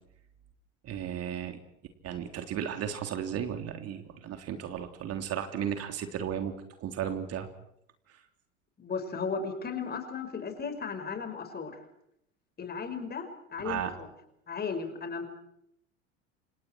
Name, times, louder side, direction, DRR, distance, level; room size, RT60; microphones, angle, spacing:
voice 1, 0.8-1.6 2.0-7.5 8.1-8.2 13.6-13.9, right 9 dB, 40° right, 6 dB, 3.4 m, -35 dB
voice 2, 8.8-11.8 12.6-14.1 14.5-15.3, left 5 dB, 25° left, 8 dB, 5.5 m, -35 dB
29.0 x 28.0 x 4.6 m, 0.77 s
figure-of-eight pair, 75°, 37 cm